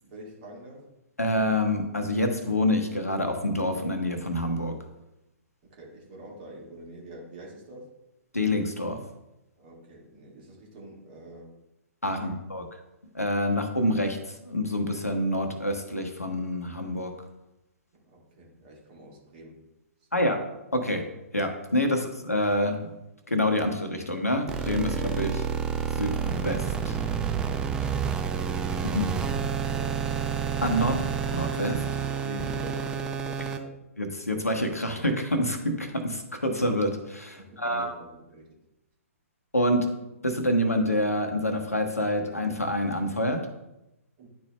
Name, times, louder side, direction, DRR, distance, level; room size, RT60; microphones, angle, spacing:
voice 1, 0.0-0.8 5.7-7.9 9.6-11.5 12.2-12.4 18.1-19.6 20.1-20.3 29.4-30.2 32.2-33.7 37.4-38.5 44.2-44.3, right 1 dB, 35° right, -3 dB, 1.9 m, -45 dB
voice 2, 1.2-4.7 8.3-9.0 12.0-12.6 13.1-17.1 20.1-20.4 20.7-21.0 21.3-23.0 23.3-25.4 25.9-27.0 28.9-29.1 30.6-31.0 31.3-31.8 34.0-37.9 39.5-39.9 40.2-43.4, left 1 dB, 80° left, 5 dB, 1.1 m, -27 dB
sound 1, 24.5-33.6, right 7 dB, 10° right, 0.4 m, -29 dB
10.5 x 4.3 x 2.2 m, 0.93 s
figure-of-eight pair, 120°, 8 cm